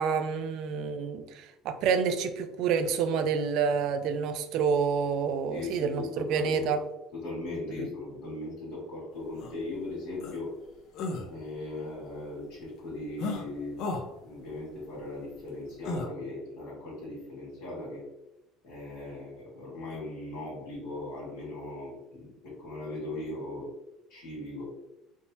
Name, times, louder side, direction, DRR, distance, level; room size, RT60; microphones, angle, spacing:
voice 1, 0.0-6.8 7.8-7.9, right 6 dB, 65° right, 9 dB, 0.3 m, -28 dB
voice 2, 5.5-6.7 7.1-10.5 11.3-13.8 14.2-18.0 18.6-23.7 24.1-24.6, left 2 dB, 85° left, -6 dB, 1.5 m, -38 dB
sound 1, 9.4-9.5 10.2-10.4 10.9-11.3 13.2-13.4 13.8-14.0 15.8-16.1, left 3 dB, 60° left, 0.5 m, -33 dB
3.4 x 2.0 x 2.7 m, 0.91 s
cardioid pair, 130°, 0 cm